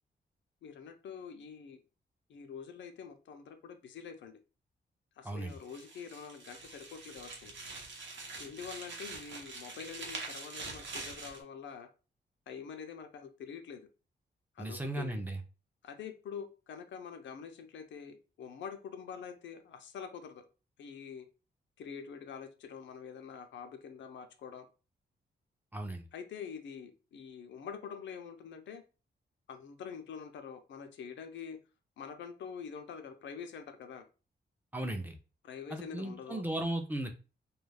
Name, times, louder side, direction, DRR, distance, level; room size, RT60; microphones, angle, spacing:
voice 1, 0.6-1.8 2.3-4.4 5.2-7.5 8.4-11.9 12.5-13.8 14.6-15.2 15.8-20.4 20.8-21.3 21.8-24.7 26.1-28.8 29.5-31.6 32.0-34.0 35.4-36.4, left 6 dB, 90° left, 7 dB, 0.5 m, -45 dB
voice 2, 5.2-5.6 14.6-15.4 25.7-26.0 34.7-35.2 35.7-37.1, right 1 dB, 10° right, 4 dB, 0.4 m, -36 dB
sound 1, 5.5-11.4, right 3 dB, 85° right, 0.8 m, -45 dB
2.3 x 2.2 x 3.3 m, 0.33 s
wide cardioid pair, 125°, 19 cm